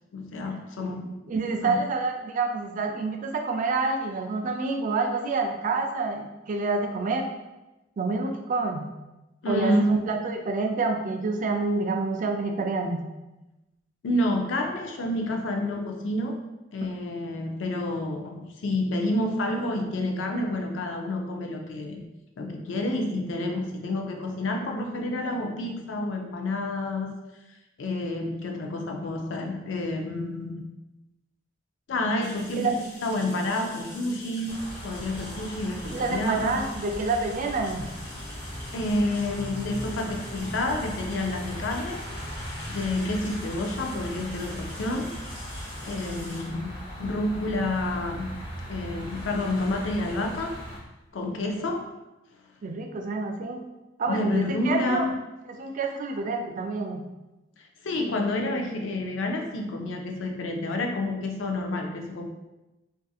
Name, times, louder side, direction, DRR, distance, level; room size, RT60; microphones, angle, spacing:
voice 1, 0.1-1.1 1.6-1.8 9.4-9.9 14.0-16.4 16.7-22.0 22.4-27.1 27.8-30.7 31.9-32.7 33.0-36.6 38.7-42.0 42.7-45.2 45.8-48.4 48.7-50.6 51.1-51.9 54.0-55.2 57.6-62.3, left 1 dB, 85° left, 3 dB, 0.4 m, -29 dB
voice 2, 1.3-7.3 8.0-8.9 9.5-13.0 32.6-32.7 35.9-37.9 52.6-53.6 54.0-55.1 55.5-57.0, right 3 dB, 45° right, 3 dB, 0.3 m, -28 dB
sound 1, 32.2-51.6, left 1 dB, 50° left, 0.9 m, -46 dB
sound 2, 34.5-50.8, equal, 30° left, 0.6 m, -38 dB
2.6 x 2.4 x 2.3 m, 1.0 s
head